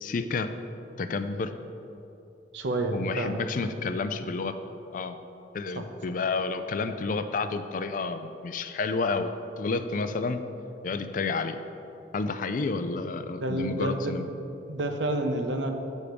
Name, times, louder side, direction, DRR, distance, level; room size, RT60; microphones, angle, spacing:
voice 1, 0.0-0.5 1.0-1.5 2.9-4.5 4.9-5.2 5.5-10.4 10.8-11.6 12.1-14.3, left 4 dB, 45° left, 10 dB, 0.4 m, -30 dB
voice 2, 2.5-3.4 5.7-5.8 13.4-14.4 14.7-15.7, right 1 dB, 80° right, 5 dB, 0.7 m, -29 dB
6.9 x 6.3 x 5.1 m, 2.9 s
head